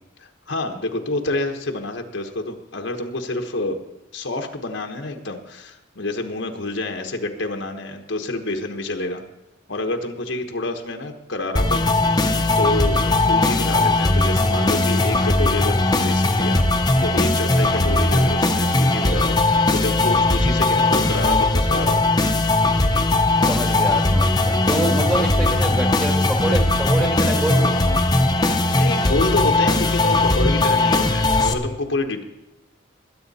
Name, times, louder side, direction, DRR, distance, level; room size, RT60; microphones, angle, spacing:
voice 1, 0.2-3.8 4.1-9.2 9.7-12.0 12.6-16.7 17.0-22.2 28.7-32.2, left 2 dB, 75° left, 4 dB, 1.1 m, -28 dB
sound 1, 11.6-31.5, left 2 dB, 20° left, 0.8 m, -19 dB
voice 2, 23.5-27.8, right 1 dB, 15° right, 2 dB, 1.4 m, -26 dB
20.5 x 8.8 x 4.2 m, 1.0 s
head